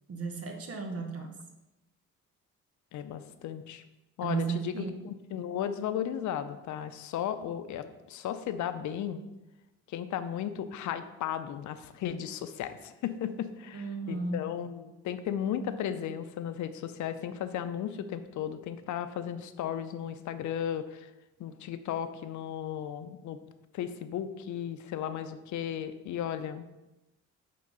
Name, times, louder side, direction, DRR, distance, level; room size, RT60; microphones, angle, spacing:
voice 1, 0.1-1.4 4.2-5.0 13.7-14.5, right 4 dB, 50° right, 3 dB, 1.1 m, -34 dB
voice 2, 2.9-3.8 4.2-9.2 9.9-21.1 21.4-23.4 23.7-26.7, left 9 dB, 75° left, 10 dB, 0.6 m, -35 dB
8.6 x 3.8 x 3.8 m, 1.0 s
cardioid pair, 90°, 30 cm